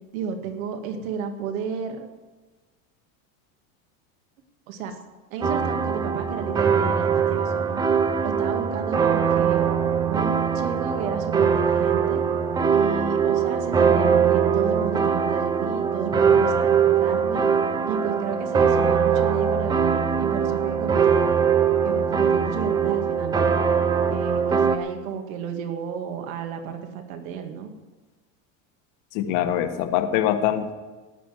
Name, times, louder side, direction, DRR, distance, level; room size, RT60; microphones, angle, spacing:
voice 1, 0.1-2.1 4.7-5.0 5.3-7.8 8.2-9.6 10.0-12.2 12.7-17.5 17.9-21.4 21.8-23.5 24.1-27.7, right 6 dB, 80° right, 5 dB, 2.2 m, -32 dB
sound 1, 5.4-24.8, right 6 dB, 10° right, 0.3 m, -22 dB
voice 2, 29.1-30.7, left 11 dB, 55° left, 8 dB, 1.5 m, -23 dB
16.5 x 6.0 x 9.4 m, 1.2 s
supercardioid pair, 155°, 41 cm